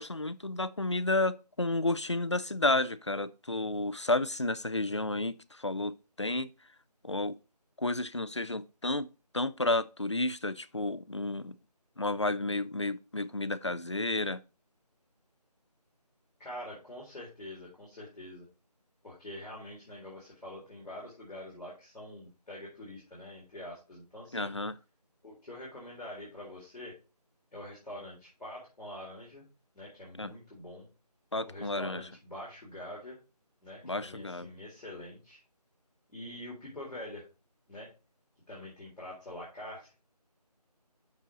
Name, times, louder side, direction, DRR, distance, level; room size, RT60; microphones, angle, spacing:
voice 1, 0.0-6.5 7.0-7.4 7.8-9.1 9.3-11.6 12.0-14.4 24.3-24.8 30.2-30.3 31.3-32.0 33.8-34.5, left 2 dB, 45° left, 0.4 m, -31 dB
voice 2, 16.4-18.4 19.0-24.5 25.2-27.0 27.5-29.4 29.7-30.9 31.5-33.2 33.6-35.4 36.1-37.3 37.7-37.9 38.5-39.9, left 1 dB, ahead, 1.9 m, -45 dB
6.2 x 5.3 x 5.0 m
figure-of-eight pair, 180°, 21 cm